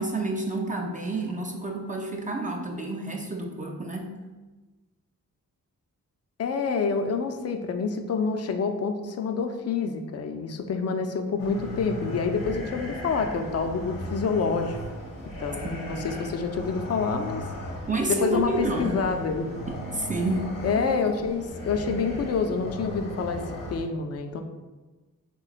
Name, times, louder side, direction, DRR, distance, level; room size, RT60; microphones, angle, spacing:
voice 1, 0.0-4.1 15.6-16.1 17.9-19.0 19.7-20.5, right 2 dB, 20° right, 0 dB, 0.4 m, -29 dB
voice 2, 6.4-14.8 15.4-17.4 18.1-19.5 20.6-23.4 23.7-24.4, left 5 dB, 45° left, 6 dB, 0.4 m, -27 dB
sound 1, 11.4-23.8, left 1 dB, 65° left, 0.9 m, -37 dB
3.2 x 3.1 x 2.4 m, 1.2 s
cardioid pair, 55°, 36 cm